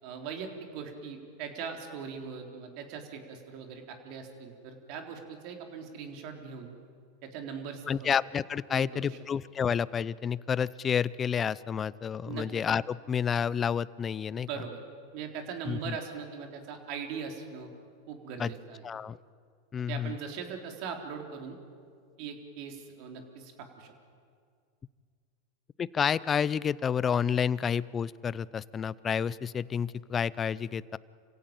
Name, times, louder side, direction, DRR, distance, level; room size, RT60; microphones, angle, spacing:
voice 1, 0.0-6.7 7.2-8.1 8.7-9.2 12.2-12.5 14.3-14.8 15.1-17.7 18.1-18.8 19.8-21.6 22.2-23.9, right 6 dB, 55° right, 4 dB, 3.9 m, -40 dB
voice 2, 7.9-14.5 15.7-16.0 18.4-18.5 18.8-19.2 19.7-20.2 25.8-31.0, left 7 dB, 25° left, 20 dB, 0.5 m, -30 dB
26.5 x 16.5 x 8.9 m, 2.2 s
hypercardioid pair, 105°, 0 cm